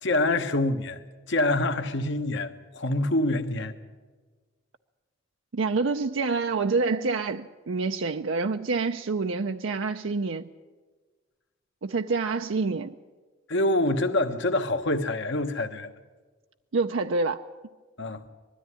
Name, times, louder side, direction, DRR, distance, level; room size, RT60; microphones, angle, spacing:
voice 1, 0.0-1.0 1.3-3.7 13.5-15.9 18.0-18.2, left 2 dB, 65° left, 1.4 m, -26 dB
voice 2, 5.5-10.5 11.8-12.9 16.7-17.4, right 4 dB, 75° right, 0.6 m, -27 dB
21.0 x 13.5 x 9.9 m
head